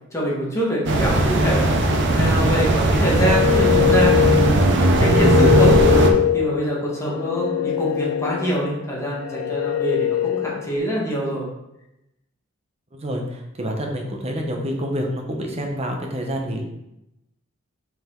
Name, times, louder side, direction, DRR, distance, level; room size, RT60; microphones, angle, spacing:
voice 1, 0.1-5.7 6.0-11.5, right 1 dB, 15° left, -5 dB, 1.7 m, -25 dB
sound 1, 0.9-6.1, right 2 dB, 55° right, 0.8 m, -18 dB
sound 2, 2.9-10.8, left 11 dB, 75° left, 0.3 m, -22 dB
voice 2, 12.9-16.6, equal, 30° right, 2 dB, 0.9 m, -27 dB
5.5 x 5.1 x 3.8 m, 0.88 s
head